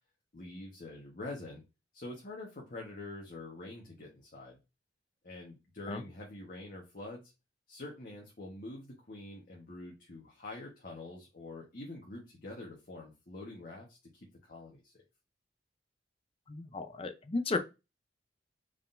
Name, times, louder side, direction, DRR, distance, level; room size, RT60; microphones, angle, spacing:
voice 1, 0.3-1.6 1.9-4.6 5.2-7.3 7.7-14.9, left 2 dB, 50° left, 1.1 m, -46 dB
voice 2, 16.5-17.6, left 3 dB, 30° left, 0.6 m, -34 dB
4.7 x 3.7 x 2.6 m
head